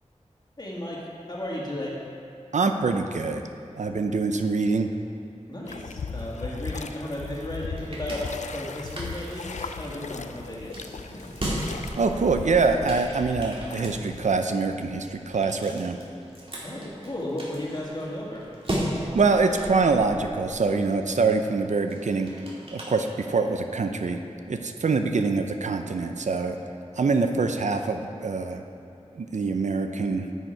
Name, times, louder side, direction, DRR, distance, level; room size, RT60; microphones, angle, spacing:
voice 1, 0.6-1.9 5.5-9.5 9.7-11.4 16.6-18.4, left 1 dB, 35° left, -5 dB, 1.9 m, -34 dB
voice 2, 2.5-3.4 3.8-4.9 12.0-16.0 19.1-22.3 22.7-24.2 24.5-26.6 27.0-28.6 29.2-30.3, right 4 dB, 80° right, 6 dB, 0.5 m, -24 dB
sound 1, 5.7-14.3, left 4 dB, 80° left, 0.4 m, -38 dB
sound 2, 7.3-23.6, right 1 dB, 50° right, 1.9 m, -37 dB
10.0 x 6.3 x 4.5 m, 2.5 s
wide cardioid pair, 65°, 12 cm